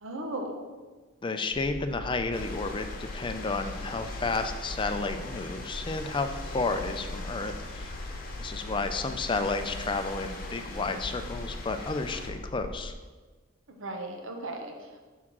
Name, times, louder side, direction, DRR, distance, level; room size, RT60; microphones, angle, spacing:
voice 1, 0.0-0.6 13.7-15.0, right 1 dB, 70° right, 2 dB, 0.9 m, -37 dB
voice 2, 1.2-7.9 8.4-12.9, left 3 dB, 25° left, 7 dB, 0.4 m, -32 dB
sound 1, 1.5-12.9, left 1 dB, 80° left, 0.6 m, -40 dB
sound 2, 2.3-12.3, left 2 dB, 45° left, 0.9 m, -43 dB
6.2 x 3.6 x 6.0 m, 1.3 s
head